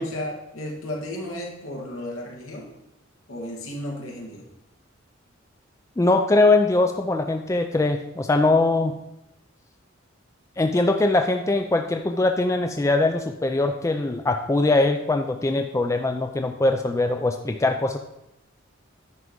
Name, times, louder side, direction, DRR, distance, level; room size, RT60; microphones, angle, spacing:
voice 1, 0.0-2.7 3.3-4.4, left 1 dB, 90° left, -1 dB, 1.8 m, -34 dB
voice 2, 6.0-9.0 10.6-18.0, left 2 dB, 15° left, 5 dB, 0.3 m, -21 dB
9.8 x 4.6 x 5.2 m, 0.86 s
head